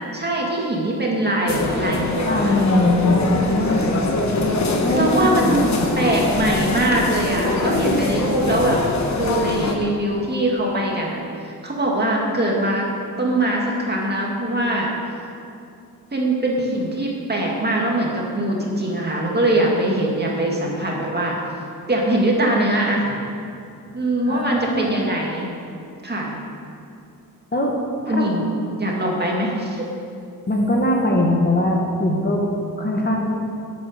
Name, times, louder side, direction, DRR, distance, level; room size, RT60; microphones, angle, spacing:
voice 1, 0.1-2.6 5.0-5.7 6.0-8.8 9.1-12.9 13.2-14.9 16.1-21.4 21.9-23.0 23.9-25.5 26.0-26.3 28.1-28.5 28.8-29.8, right 1 dB, 30° right, -2 dB, 2.1 m, -22 dB
sound 1, 1.5-9.7, left 2 dB, 50° left, 1.3 m, -23 dB
voice 2, 2.2-3.9 4.8-5.8 24.3-24.9 27.5-27.7 28.1-28.3 30.5-32.4 32.8-33.3, left 1 dB, 30° left, -1 dB, 1.4 m, -21 dB
11.5 x 8.5 x 5.1 m, 2.5 s
wide cardioid pair, 100°, 36 cm